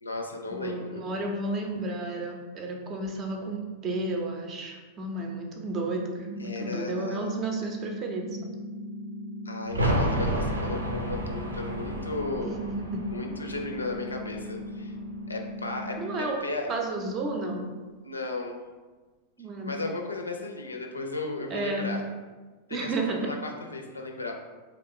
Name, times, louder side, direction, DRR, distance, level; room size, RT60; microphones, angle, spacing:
voice 1, 0.0-1.0 6.4-7.4 9.4-12.6 13.1-14.9 15.3-16.0 16.4-16.7 18.0-18.6 19.6-22.0 22.7-24.3, left 2 dB, 80° left, 2 dB, 0.4 m, -35 dB
voice 2, 0.5-8.4 12.4-13.0 16.0-16.4 16.7-17.7 19.4-19.8 21.5-21.9 22.7-23.3, right 2 dB, 30° right, 2 dB, 0.6 m, -32 dB
sound 1, 6.2-16.2, left 1 dB, 20° left, 0.6 m, -38 dB
sound 2, 9.7-15.2 15.5-15.6, right 1 dB, 80° right, 0.5 m, -31 dB
3.1 x 2.4 x 3.6 m, 1.3 s
figure-of-eight pair, 90°, 0 cm